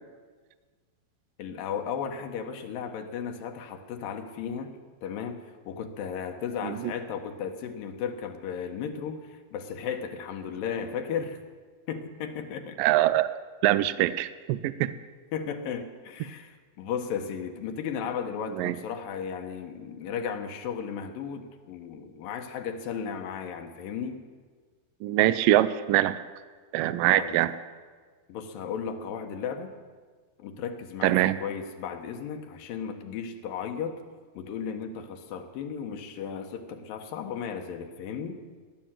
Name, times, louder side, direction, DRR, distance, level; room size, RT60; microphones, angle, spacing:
voice 1, 1.4-11.4 11.9-12.8 15.3-24.2 27.2-27.4 28.3-29.7 30.4-34.0 34.3-38.4, left 7 dB, 75° left, 6 dB, 2.7 m, -35 dB
voice 2, 12.8-13.3 13.6-14.9 18.6-18.8 25.0-26.2 26.7-27.5 31.0-31.4, right 15 dB, 80° right, 14 dB, 2.2 m, -23 dB
18.0 x 10.5 x 7.5 m, 1.5 s
omnidirectional pair, 4.2 m